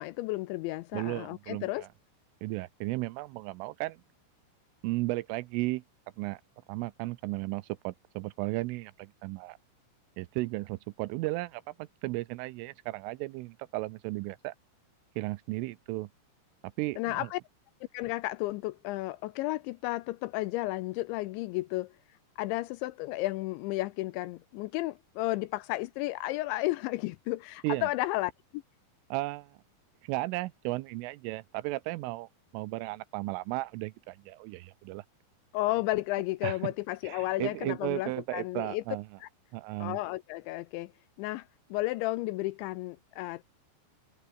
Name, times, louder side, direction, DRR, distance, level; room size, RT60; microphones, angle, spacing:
voice 1, 0.0-1.9 17.0-17.4 17.9-21.9 22.4-28.6 35.5-38.8 39.2-39.3 39.8-40.9 41.2-41.5 41.7-43.4, left 19 dB, 85° left, 2.6 m, -33 dB
voice 2, 0.9-1.9 2.4-4.0 4.8-5.8 6.2-6.4 6.7-9.6 10.2-14.5 15.2-16.1 16.8-17.3 27.6-27.9 29.1-29.6 30.0-35.0 36.4-36.7 37.0-39.1 39.5-40.0, right 20 dB, 85° right, 3.2 m, -35 dB
omnidirectional pair, 5.9 m